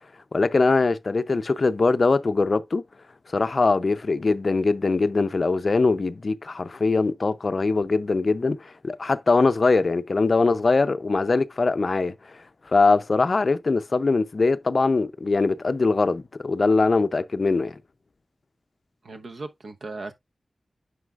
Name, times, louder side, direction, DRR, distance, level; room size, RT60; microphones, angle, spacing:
voice 1, 0.3-2.8 3.3-12.4 12.7-17.8, left 3 dB, 50° left, 0.5 m, -22 dB
voice 2, 19.0-20.1, right 3 dB, 80° right, 0.9 m, -37 dB
9.5 x 5.3 x 2.4 m
wide cardioid pair, 110°, 0 cm